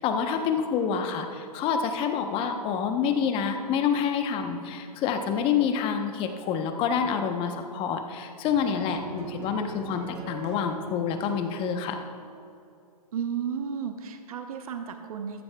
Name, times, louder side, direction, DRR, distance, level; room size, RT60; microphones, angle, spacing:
voice 1, 0.0-12.0, left 7 dB, 25° left, 6 dB, 0.9 m, -27 dB
sound 1, 8.4-12.6, right 4 dB, 40° right, 1.3 m, -43 dB
voice 2, 13.1-15.4, right 7 dB, 60° right, 7 dB, 0.9 m, -33 dB
14.0 x 12.5 x 2.3 m, 2.6 s
hypercardioid pair, 130°, 20 cm